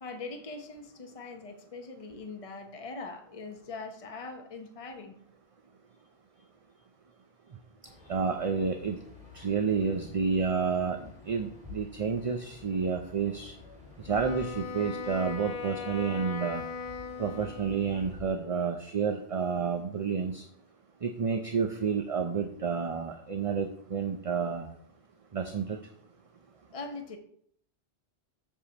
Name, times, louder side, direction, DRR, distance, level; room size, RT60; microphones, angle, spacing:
voice 1, 0.0-5.2 26.7-27.2, left 3 dB, 35° left, 4 dB, 1.0 m, -41 dB
sound 1, 7.8-18.2, left 4 dB, 5° right, 2.7 m, -50 dB
voice 2, 8.1-9.0 9.3-11.0 11.3-13.5 14.0-16.6 17.2-20.4 21.0-24.7 25.3-25.8, right 6 dB, 40° right, 5 dB, 0.7 m, -30 dB
Wind instrument woodwind instrument, 14.0-18.2, left 5 dB, 55° left, 0.7 m, -39 dB
7.4 x 4.9 x 7.0 m, 0.67 s
omnidirectional pair, 1.1 m